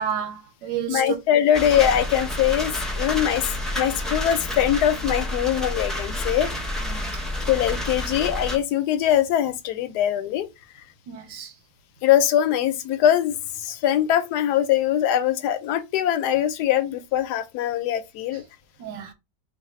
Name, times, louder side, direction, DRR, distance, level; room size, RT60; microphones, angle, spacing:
voice 1, 0.0-1.2 6.8-7.2 11.1-11.5 18.8-19.1, right 8 dB, 90° right, 1.5 m, -31 dB
voice 2, 0.9-3.4 3.7-6.5 7.5-10.5 12.0-18.4, left 10 dB, 75° left, 1.1 m, -22 dB
sound 1, 1.5-8.6, left 1 dB, ahead, 0.6 m, -29 dB
4.0 x 2.3 x 4.2 m
omnidirectional pair, 1.9 m